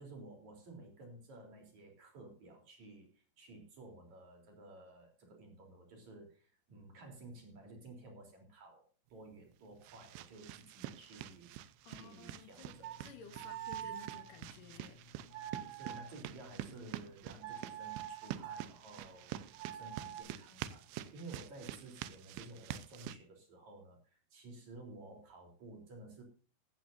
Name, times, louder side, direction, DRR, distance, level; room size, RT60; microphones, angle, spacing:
voice 1, 0.0-8.8 9.1-11.6 11.9-12.9 13.8-13.9 15.7-26.2, right 2 dB, 40° right, 3 dB, 4.3 m, -54 dB
sound 1, 9.2-23.2, right 12 dB, 80° right, 2.9 m, -47 dB
voice 2, 11.8-12.7 13.0-15.0, left 6 dB, 65° left, 8 dB, 2.3 m, -54 dB
sound 2, 12.7-17.1 17.4-18.7 19.5-20.2, right 11 dB, 60° right, 1.8 m, -47 dB
15.5 x 14.0 x 2.6 m, 0.38 s
omnidirectional pair, 5.6 m